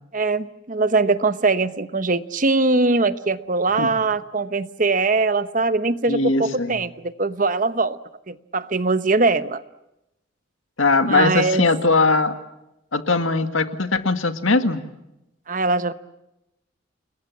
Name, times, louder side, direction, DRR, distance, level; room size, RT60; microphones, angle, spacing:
voice 1, 0.1-8.0 8.3-9.6 11.1-11.7 15.5-15.9, right 3 dB, 40° right, 13 dB, 0.9 m, -21 dB
voice 2, 6.1-6.8 10.8-12.3 12.9-14.8, left 3 dB, 85° left, 8 dB, 1.9 m, -20 dB
30.0 x 21.5 x 7.2 m, 0.88 s
head